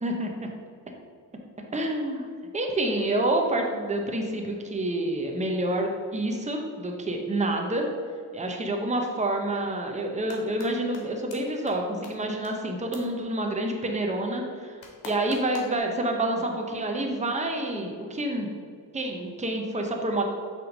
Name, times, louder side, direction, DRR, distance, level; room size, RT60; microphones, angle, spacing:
voice 1, 1.7-2.3 2.5-7.9 8.3-14.8 15.0-18.5 18.9-20.2, right 1 dB, 15° right, 2 dB, 0.9 m, -28 dB
sound 1, 10.0-10.7 10.9-11.0 11.3-11.4 11.7-11.8 12.0-12.1 12.4-12.5 12.9-13.0 14.8-15.8, left 4 dB, 90° left, 1.2 m, -42 dB
5.7 x 3.5 x 5.2 m, 2.1 s
cardioid pair, 65°, 44 cm